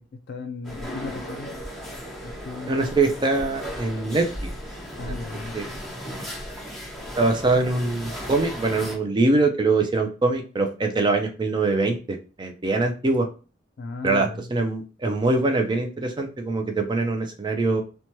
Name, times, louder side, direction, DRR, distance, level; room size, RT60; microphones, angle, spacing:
voice 1, 0.0-1.6 2.2-2.9 5.0-5.8 13.8-14.5, left 3 dB, 55° left, 4 dB, 0.3 m, -36 dB
sound 1, 0.6-9.0, equal, ahead, 0.9 m, -36 dB
voice 2, 2.7-4.5 4.9-5.1 5.5-5.7 7.2-13.3 14.0-17.8, right 3 dB, 25° right, 5 dB, 0.4 m, -23 dB
2.8 x 2.2 x 2.9 m, 0.35 s
head